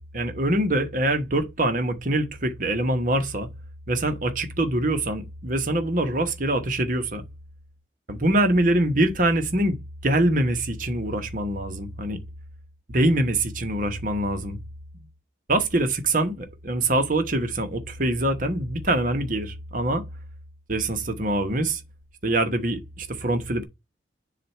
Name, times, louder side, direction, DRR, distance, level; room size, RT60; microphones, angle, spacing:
voice 1, 0.1-3.5 3.9-7.2 8.1-9.8 10.0-12.2 12.9-14.6 15.5-20.0 20.7-21.8 22.2-23.7, right 1 dB, 45° right, 1.1 m, -24 dB
7.4 x 2.5 x 5.5 m
head